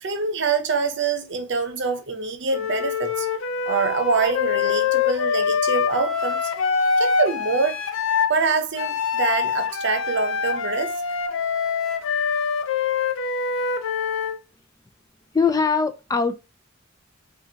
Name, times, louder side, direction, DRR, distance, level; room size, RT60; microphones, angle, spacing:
voice 1, 0.0-3.3 3.7-6.5 7.0-7.8 8.3-11.0, right 4 dB, 60° right, 0.7 m, -25 dB
Wind instrument woodwind instrument, 2.5-8.4 8.8-14.4, left 5 dB, 80° left, 0.6 m, -24 dB
voice 2, 15.3-16.4, left 5 dB, 20° left, 0.3 m, -21 dB
5.2 x 2.4 x 2.8 m
head